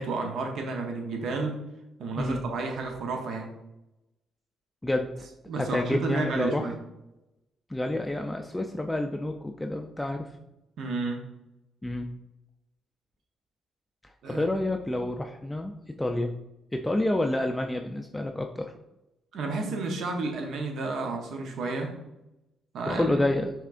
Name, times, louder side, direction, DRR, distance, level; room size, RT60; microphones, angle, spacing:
voice 1, 0.0-1.6 2.0-3.5 5.5-6.7 10.8-11.2 14.2-14.4 19.3-21.9 22.7-23.1, right 3 dB, 70° right, 2 dB, 0.8 m, -31 dB
voice 2, 4.8-5.3 5.5-6.6 7.7-10.3 11.8-12.1 14.0-16.3 16.7-18.7 22.9-23.5, left 1 dB, 10° left, 3 dB, 0.3 m, -29 dB
5.7 x 3.6 x 2.5 m, 0.91 s
cardioid pair, 90°, 0 cm